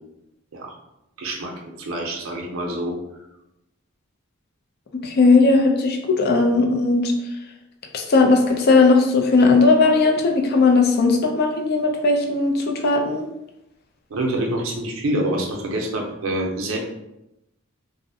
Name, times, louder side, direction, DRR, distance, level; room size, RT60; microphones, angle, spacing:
voice 1, 1.2-3.0 14.1-16.8, right 1 dB, 70° right, 1 dB, 0.5 m, -26 dB
voice 2, 5.0-7.1 7.9-13.3, left 3 dB, 50° left, 2 dB, 0.4 m, -17 dB
2.5 x 2.0 x 2.6 m, 0.89 s
head